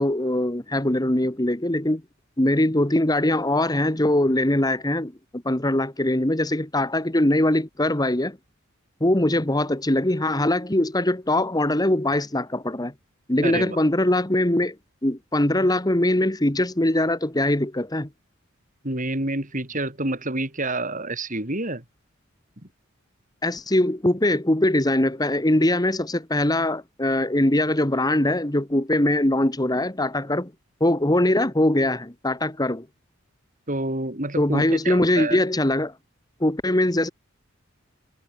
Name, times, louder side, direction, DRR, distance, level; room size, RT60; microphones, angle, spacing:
voice 1, 0.0-2.0 2.4-8.4 9.0-12.9 13.3-14.8 15.0-18.1 23.4-30.5 30.8-32.9 34.4-35.9 36.4-37.1, left 1 dB, 20° left, 1.7 m, -22 dB
voice 2, 13.4-13.8 18.8-21.8 33.7-35.4, right 2 dB, 40° right, 6.3 m, -28 dB
head